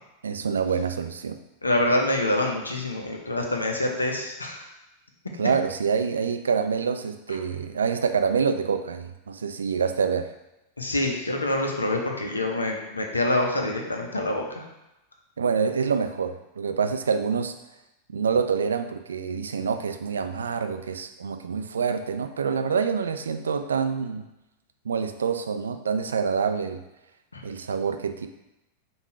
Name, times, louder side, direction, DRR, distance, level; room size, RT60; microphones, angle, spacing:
voice 1, 0.2-1.4 5.4-10.3 15.4-17.5 18.1-24.3 24.8-26.8 27.4-28.3, right 6 dB, 70° right, 8 dB, 0.3 m, -26 dB
voice 2, 1.6-4.6 10.8-14.6 27.3-27.4, left 1 dB, 80° left, 2 dB, 0.7 m, -26 dB
5.3 x 2.4 x 4.2 m, 0.94 s
figure-of-eight pair, 90°, 0 cm